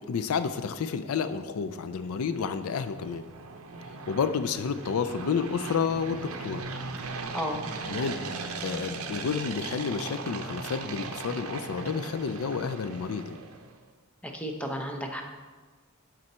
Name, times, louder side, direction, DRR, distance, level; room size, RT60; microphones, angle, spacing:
voice 1, 0.1-3.2 3.9-6.6 7.9-13.4, left 6 dB, 70° left, 10 dB, 0.4 m, -30 dB
sound 1, 1.5-13.8, right 4 dB, 70° right, 0.7 m, -39 dB
voice 2, 7.3-7.6 14.2-15.2, equal, 5° left, 3 dB, 0.7 m, -33 dB
11.0 x 4.0 x 4.3 m, 1.4 s
head